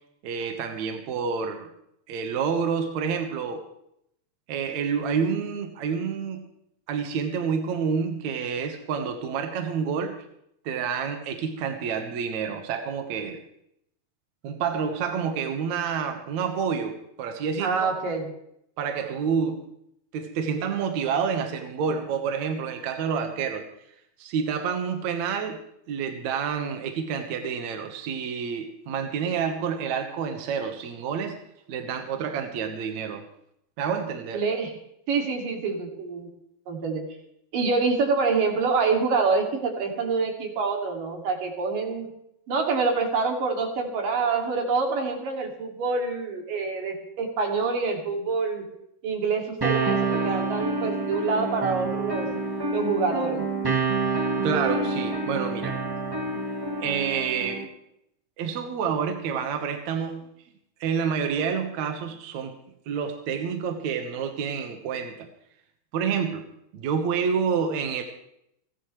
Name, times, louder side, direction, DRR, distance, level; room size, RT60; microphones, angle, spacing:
voice 1, 0.2-1.7 2.1-3.6 4.5-6.4 6.9-10.2 10.6-13.4 14.4-17.9 18.8-19.6 20.1-23.7 24.2-25.6 25.9-31.4 31.7-33.2 33.8-34.4 54.4-55.8 56.8-57.6 58.4-60.3 60.8-62.6 62.9-65.3 65.9-66.4 66.7-68.0, right 6 dB, 65° right, 5 dB, 2.5 m, -28 dB
voice 2, 17.6-18.3 34.3-34.7 35.1-36.3 36.7-37.0 37.5-42.1 42.5-48.6 49.0-52.3 52.7-53.4, right 4 dB, 80° right, 2 dB, 4.2 m, -26 dB
sound 1, 49.6-57.6, right 3 dB, 25° right, 0.5 m, -28 dB
29.5 x 11.0 x 3.2 m, 0.75 s
omnidirectional pair, 3.8 m